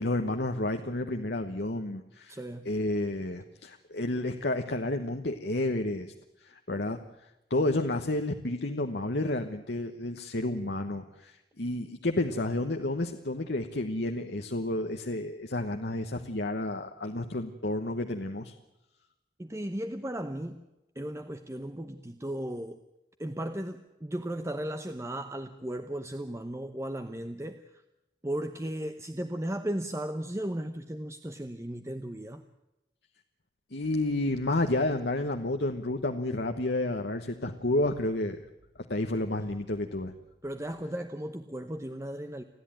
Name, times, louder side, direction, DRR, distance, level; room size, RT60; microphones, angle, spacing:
voice 1, 0.0-2.4 2.6-6.1 6.4-7.0 7.5-18.5 33.7-38.4 38.9-40.1, left 2 dB, 70° left, 5 dB, 1.2 m, -30 dB
voice 2, 2.3-2.7 19.4-20.7 20.9-22.8 23.2-27.8 28.2-32.4 40.4-42.4, right 1 dB, 15° right, 8 dB, 0.8 m, -36 dB
30.0 x 11.0 x 9.0 m, 0.93 s
head